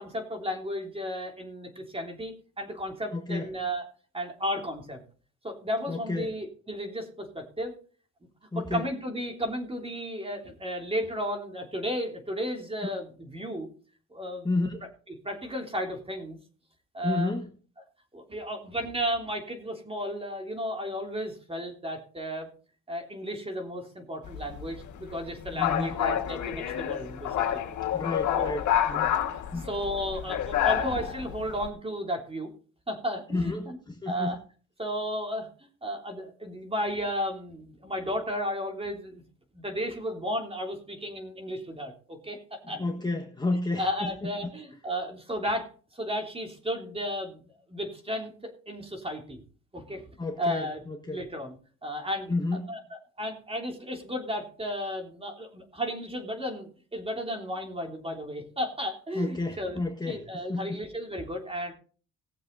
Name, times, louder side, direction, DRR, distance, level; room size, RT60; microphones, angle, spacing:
voice 1, 0.0-3.8 4.1-5.0 5.4-7.7 8.5-13.7 14.1-14.5 15.1-16.4 16.9-17.3 18.1-22.5 22.9-27.6 28.3-28.5 29.5-32.5 32.9-33.8 34.1-34.4 34.8-35.5 35.8-39.2 39.5-42.8 43.8-45.7 45.9-47.4 47.7-49.4 49.7-50.0 50.4-50.8 51.1-51.6 51.8-52.3 52.7-61.7, equal, 20° right, 3 dB, 3.2 m, -33 dB
voice 2, 3.1-3.5 5.9-6.3 8.5-8.8 14.4-14.8 17.0-17.5 25.5-26.0 27.9-29.2 29.5-29.7 33.3-34.3 42.7-44.5 50.2-51.2 52.3-52.7 59.1-60.2 60.5-60.8, left 3 dB, 15° left, 1 dB, 1.6 m, -31 dB
sound 1, 24.2-31.7, left 10 dB, 75° left, 2.0 m, -29 dB
18.5 x 7.3 x 4.0 m, 0.42 s
cardioid pair, 90°, 30 cm